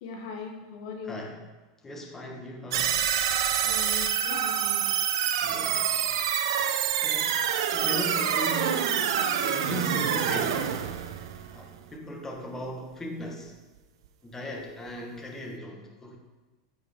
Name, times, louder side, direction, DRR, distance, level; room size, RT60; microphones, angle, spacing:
voice 1, 0.0-1.2 3.6-4.8, left 5 dB, 70° left, 2 dB, 1.4 m, -39 dB
voice 2, 1.0-1.4 1.8-3.0 5.4-6.0 7.0-7.4 7.7-8.9 9.2-10.6 11.5-13.5 14.2-16.2, equal, 15° left, 1 dB, 1.7 m, -38 dB
sound 1, 2.7-12.0, right 9 dB, 75° right, 0.7 m, -27 dB
14.0 x 4.9 x 3.8 m, 1.2 s
hypercardioid pair, 115°, 2 cm